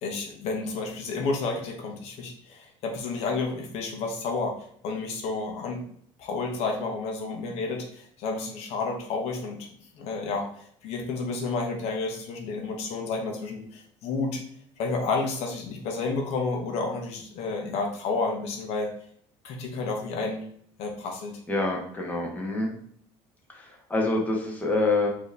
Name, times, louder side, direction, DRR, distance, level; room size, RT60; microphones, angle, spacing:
voice 1, 0.0-5.8 6.2-9.6 10.0-14.4 14.8-18.9 19.4-20.4 20.8-21.4, left 3 dB, 65° left, 2 dB, 0.9 m, -31 dB
voice 2, 21.5-22.7 23.5-25.1, left 2 dB, 15° left, -1 dB, 1.2 m, -26 dB
4.5 x 2.9 x 3.3 m, 0.63 s
cardioid pair, 115°, 12 cm